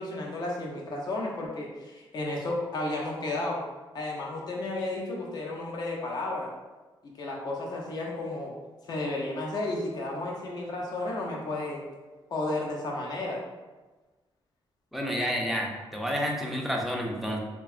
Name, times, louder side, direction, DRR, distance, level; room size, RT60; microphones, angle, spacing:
voice 1, 0.0-3.6 3.9-6.5 7.0-8.5 8.9-11.8 12.3-13.4, left 2 dB, 45° left, -2 dB, 0.5 m, -33 dB
voice 2, 14.9-17.4, equal, ahead, -1 dB, 0.3 m, -30 dB
2.7 x 2.2 x 2.4 m, 1.2 s
wide cardioid pair, 150°, 9 cm